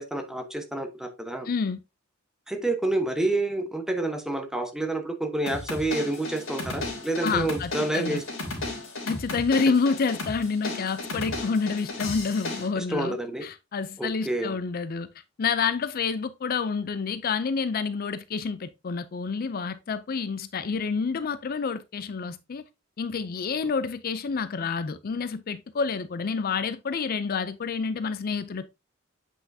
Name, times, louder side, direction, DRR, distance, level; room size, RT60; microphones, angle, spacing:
voice 1, 0.0-1.5 2.5-8.2 12.8-13.4 14.0-14.5, right 2 dB, 5° right, 1.0 m, -28 dB
voice 2, 1.4-1.8 7.2-8.2 9.1-15.1 15.4-22.6 23.0-28.7, left 5 dB, 45° left, 0.4 m, -28 dB
sound 1, 5.5-12.7, left 2 dB, 75° left, 3.0 m, -34 dB
8.0 x 5.6 x 2.7 m
head